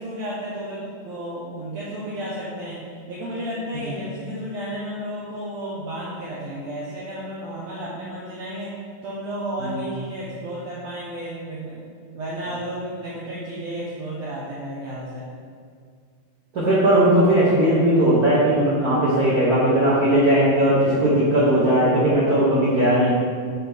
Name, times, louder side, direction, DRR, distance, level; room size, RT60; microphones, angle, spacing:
voice 1, 0.0-11.8 12.1-15.3, right 1 dB, 65° right, -7 dB, 1.9 m, -32 dB
voice 2, 16.5-23.1, right 1 dB, 85° right, -8 dB, 0.8 m, -18 dB
7.3 x 5.8 x 3.6 m, 2.1 s
omnidirectional pair, 3.6 m